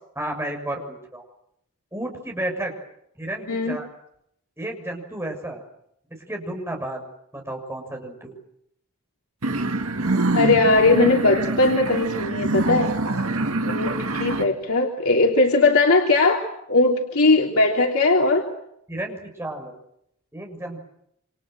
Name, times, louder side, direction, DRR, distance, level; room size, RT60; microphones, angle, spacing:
voice 1, 0.1-1.2 1.9-2.7 3.1-3.9 4.6-5.6 6.1-7.0 7.3-8.3 18.9-19.7 20.3-20.8, right 1 dB, 10° right, 2 dB, 6.8 m, -32 dB
sound 1, 9.4-14.5, right 2 dB, 80° right, 1.9 m, -25 dB
voice 2, 10.3-12.9 13.6-18.5, left 3 dB, 80° left, 0 dB, 3.3 m, -19 dB
28.5 x 27.0 x 7.7 m, 0.77 s
head